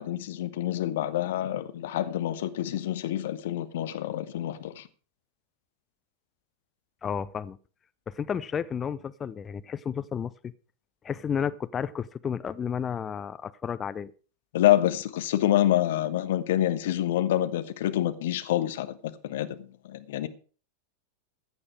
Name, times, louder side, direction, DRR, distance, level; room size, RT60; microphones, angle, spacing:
voice 1, 0.0-4.9 14.5-19.0 19.2-20.3, left 13 dB, 55° left, 1.3 m, -27 dB
voice 2, 7.0-7.6 8.1-10.5 11.0-14.1, left 7 dB, 20° left, 0.6 m, -32 dB
15.0 x 9.5 x 4.8 m
figure-of-eight pair, 90°, 0 cm